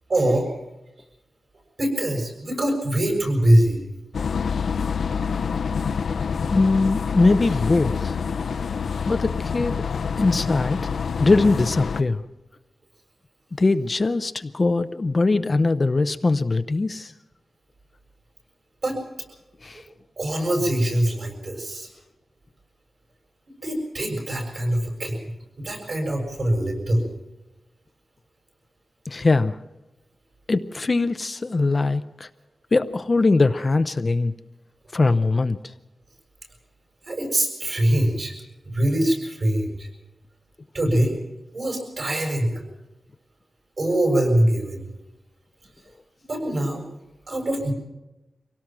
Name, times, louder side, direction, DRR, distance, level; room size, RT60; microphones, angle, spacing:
voice 1, 0.1-0.5 1.8-3.8 18.8-19.0 20.2-21.9 23.6-25.2 25.6-27.0 37.1-38.3 38.6-39.9 40.7-41.1 41.5-42.6 43.8-44.9 46.3-46.8 47.3-47.7, right 1 dB, 45° right, 2 dB, 6.8 m, -23 dB
sound 1, 4.1-12.0, left 6 dB, 75° left, 0.8 m, -27 dB
voice 2, 6.5-8.2 9.1-9.8 10.2-10.8 11.2-12.2 13.6-17.1 19.6-19.8 29.1-29.6 30.5-32.3 32.7-34.3 34.9-35.6, left 3 dB, 30° left, 10 dB, 0.6 m, -21 dB
25.0 x 18.0 x 6.0 m, 0.99 s
wide cardioid pair, 175°, 0 cm